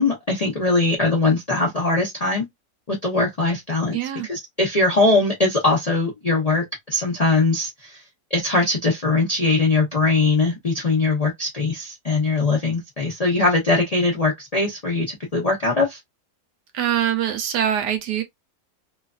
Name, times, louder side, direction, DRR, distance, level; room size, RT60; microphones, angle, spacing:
voice 1, 0.0-2.5 2.9-4.0 4.3-8.0 8.3-16.0, left 3 dB, 85° left, 0.3 m, -21 dB
voice 2, 3.9-4.3 16.7-18.2, right 10 dB, 75° right, 1.2 m, -23 dB
3.0 x 2.3 x 2.3 m
omnidirectional pair, 1.9 m